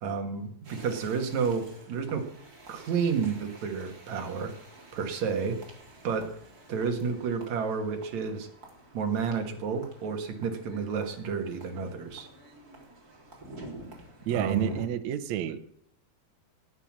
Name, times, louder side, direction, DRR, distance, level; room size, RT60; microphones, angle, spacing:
voice 1, 0.0-2.2 2.7-4.5 4.9-5.6 6.0-6.3 6.7-8.5 8.9-12.3 14.3-14.8, right 5 dB, 55° right, 5 dB, 2.5 m, -30 dB
sound 1, 0.6-14.9, right 1 dB, 25° right, 3.5 m, -49 dB
voice 2, 14.3-15.6, right 10 dB, 70° right, 9 dB, 1.8 m, -30 dB
18.0 x 8.0 x 7.3 m, 0.69 s
omnidirectional pair, 4.3 m